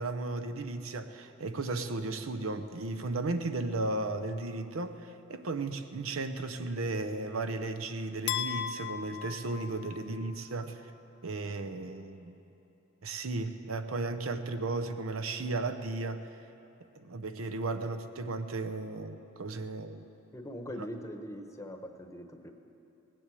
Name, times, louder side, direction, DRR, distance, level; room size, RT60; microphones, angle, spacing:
voice 1, 0.0-10.9 11.2-12.4 13.0-16.3 17.0-20.0, right 3 dB, 80° right, 9 dB, 0.7 m, -35 dB
sound 1, 8.3-10.4, left 9 dB, 55° left, 0.5 m, -37 dB
voice 2, 20.3-22.5, equal, 15° left, 5 dB, 0.9 m, -42 dB
18.5 x 7.7 x 8.4 m, 2.9 s
head